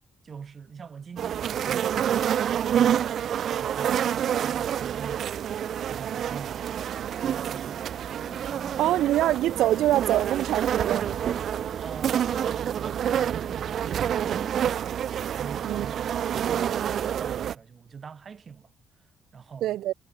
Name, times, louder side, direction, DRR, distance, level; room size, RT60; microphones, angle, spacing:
voice 1, 0.2-2.3 2.7-5.4 5.9-7.9 8.5-8.8 11.8-14.8 15.3-18.7 19.3-19.8, right 6 dB, 30° right, 3.7 m, -43 dB
sound 1, 1.2-17.5, right 9 dB, 45° right, 0.5 m, -28 dB
sound 2, 8.2-14.4, equal, ahead, 2.8 m, -48 dB
voice 2, 8.8-11.2 15.7-15.9 19.6-19.9, right 14 dB, 80° right, 0.7 m, -24 dB
cardioid pair, 180°, 0 cm